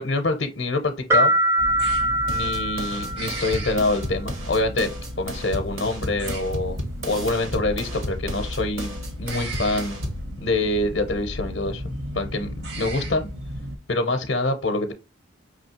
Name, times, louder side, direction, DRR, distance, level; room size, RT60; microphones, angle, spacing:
voice 1, 0.0-1.3 2.3-6.8 7.0-10.0 10.4-13.3 13.9-14.9, left 2 dB, 55° left, 0.5 m, -25 dB
sound 1, 1.1-3.8, right 1 dB, 15° right, 0.4 m, -23 dB
sound 2, 1.6-13.8, equal, 55° right, 0.8 m, -35 dB
sound 3, 2.3-10.3, equal, 75° right, 1.3 m, -34 dB
5.0 x 3.1 x 2.8 m
head